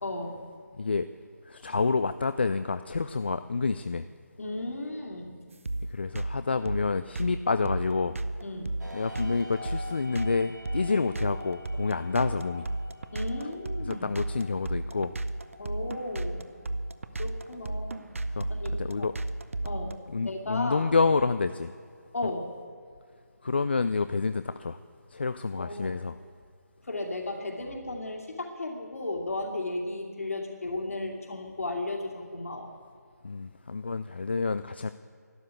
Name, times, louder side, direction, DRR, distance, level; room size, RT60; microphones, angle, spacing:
voice 1, 0.0-0.4 4.4-5.4 8.4-8.8 10.9-11.0 13.1-14.1 15.6-16.5 17.2-18.1 18.5-19.1 19.6-20.9 22.1-22.5 25.6-25.9 26.8-32.7, left 2 dB, 55° left, 1 dB, 2.5 m, -35 dB
voice 2, 0.8-1.1 1.5-4.1 5.9-8.2 8.9-12.7 13.9-15.2 18.4-19.1 20.1-21.7 22.2-22.3 23.4-24.8 25.1-26.2 33.2-34.9, left 4 dB, 35° left, 11 dB, 0.4 m, -28 dB
sound 1, 5.7-19.9, right 2 dB, 50° right, 0.8 m, -33 dB
sound 2, 8.8-22.4, left 2 dB, 85° right, 2.7 m, -48 dB
12.5 x 11.5 x 8.2 m, 2.2 s
figure-of-eight pair, 155°, 9 cm